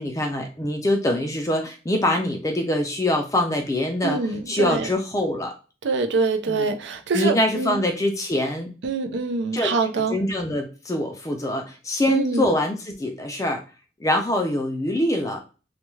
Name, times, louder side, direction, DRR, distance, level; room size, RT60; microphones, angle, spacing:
voice 1, 0.0-4.2 4.5-5.5 6.5-6.7 7.1-8.7 9.5-9.7 10.1-13.6 14.0-15.4, left 1 dB, 15° left, 0.3 m, -24 dB
voice 2, 4.0-4.9 5.8-7.8 8.8-10.2 12.1-12.5, right 3 dB, 70° right, 0.4 m, -25 dB
2.2 x 2.2 x 3.1 m
head